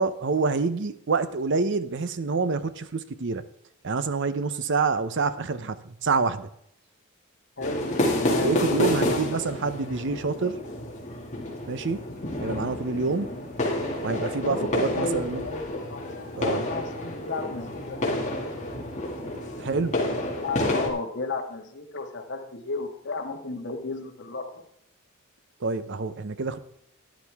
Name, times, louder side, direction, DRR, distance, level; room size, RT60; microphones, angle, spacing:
voice 1, 0.0-3.4 3.8-6.5 8.4-10.6 11.7-12.0 12.4-13.3 14.0-15.5 16.4-16.6 19.6-20.0 25.6-26.6, right 4 dB, 55° right, 13 dB, 0.7 m, -27 dB
voice 2, 7.6-7.9 8.2-9.4 14.4-16.0 16.4-18.0 20.4-24.6, left 3 dB, 55° left, 3 dB, 1.7 m, -33 dB
sound 1, 7.6-20.9, left 1 dB, 35° left, 2.2 m, -29 dB
12.5 x 10.5 x 3.5 m, 0.74 s
head